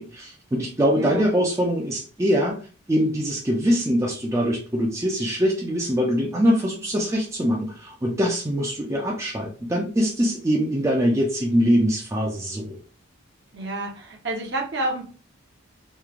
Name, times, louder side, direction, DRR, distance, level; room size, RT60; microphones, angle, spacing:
voice 1, 0.0-2.6 2.9-12.8, equal, 15° right, -2 dB, 0.4 m, -23 dB
voice 2, 0.9-1.3 13.5-15.0, right 2 dB, 55° right, 0 dB, 0.7 m, -29 dB
3.1 x 2.1 x 2.4 m, 0.38 s
head